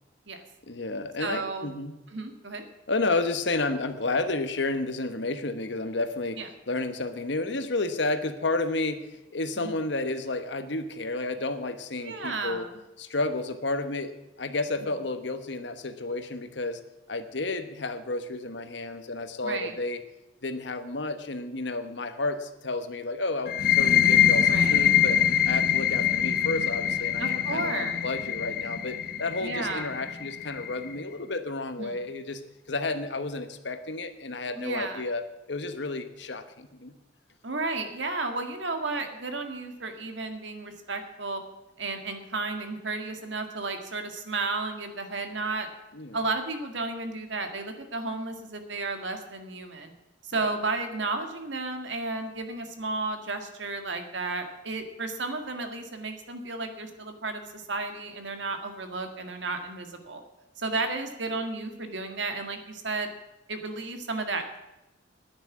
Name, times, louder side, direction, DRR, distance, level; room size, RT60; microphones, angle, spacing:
voice 1, 0.7-1.9 2.9-6.4 6.7-12.7 13.0-16.8 17.1-20.0 20.4-25.2 25.4-32.4 32.7-36.9 45.9-46.2, left 2 dB, 65° left, 9 dB, 1.2 m, -31 dB
voice 2, 1.2-1.7 2.1-2.6 6.4-6.5 9.6-9.7 12.0-12.7 19.4-19.7 24.5-24.9 27.2-28.0 29.4-29.9 31.8-32.0 34.6-35.0 37.4-41.4 41.8-45.7 46.1-49.9 50.3-60.2 60.6-63.1 63.5-64.6, right 3 dB, 75° right, 6 dB, 1.9 m, -33 dB
sound 1, 23.5-30.9, left 9 dB, 50° left, 1.1 m, -24 dB
10.0 x 9.9 x 8.4 m, 0.97 s
head